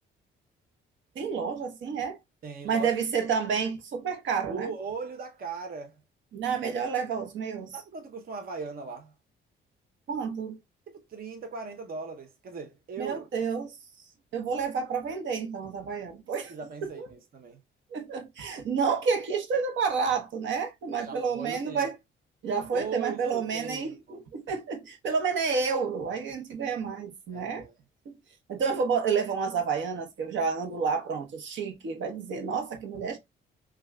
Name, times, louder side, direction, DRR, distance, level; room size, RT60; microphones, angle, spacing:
voice 1, 1.1-2.2 2.6-4.7 6.3-7.8 10.1-10.6 13.0-13.7 14.3-16.5 16.8-17.1 17.9-21.9 22.4-27.6 28.1-28.2 28.5-33.2, right 5 dB, 70° right, 1.0 m, -30 dB
voice 2, 2.4-2.9 4.5-6.0 7.7-9.1 10.9-13.3 16.5-17.6 21.0-21.9 22.7-24.2 27.3-27.7, right 5 dB, 50° right, 0.7 m, -39 dB
5.9 x 2.3 x 2.2 m
cardioid pair, 90°, 20 cm